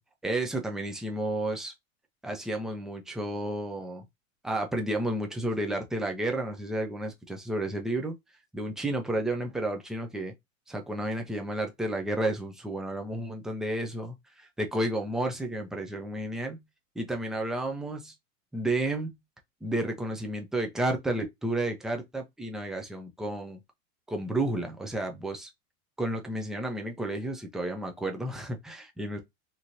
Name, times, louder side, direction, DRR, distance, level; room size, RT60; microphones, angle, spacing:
voice 1, 0.2-1.7 2.2-4.0 4.4-8.1 8.5-10.3 10.7-16.6 17.0-18.1 18.5-19.2 19.6-23.6 24.1-25.5 26.0-29.2, right 1 dB, ahead, 0.4 m, -31 dB
3.0 x 2.9 x 2.5 m
hypercardioid pair, 110°, 41 cm